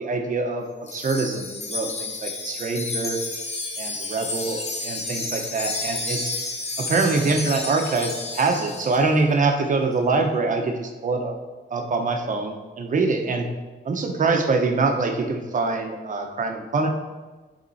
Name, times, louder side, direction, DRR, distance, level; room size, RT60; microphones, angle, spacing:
voice 1, 0.0-3.2 3.8-6.3 6.8-11.3 11.7-13.5 13.8-16.9, right 3 dB, 40° right, 3 dB, 0.8 m, -24 dB
Wind chime, 0.9-9.1, left 3 dB, 35° left, 0.7 m, -31 dB
10.5 x 3.7 x 4.1 m, 1.3 s
wide cardioid pair, 165°, 20 cm